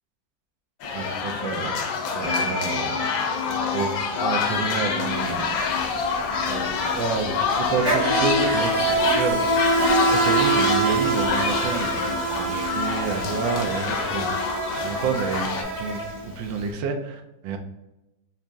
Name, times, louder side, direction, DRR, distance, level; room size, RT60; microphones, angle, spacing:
sound 1, 0.8-15.6, left 5 dB, 90° left, 1.4 m, -27 dB
voice 1, 0.9-1.8 2.1-3.0 3.7-3.9 4.2-5.6 6.5-9.6 10.1-14.3 14.8-17.6, right 5 dB, 80° right, 4 dB, 1.3 m, -29 dB
sound 2, 2.2-14.3, left 6 dB, 45° left, 1.5 m, -36 dB
Insect, 5.1-5.3 5.6-16.6, right 2 dB, 35° right, 1.7 m, -25 dB
4.1 x 2.5 x 3.4 m, 0.95 s
omnidirectional pair, 2.1 m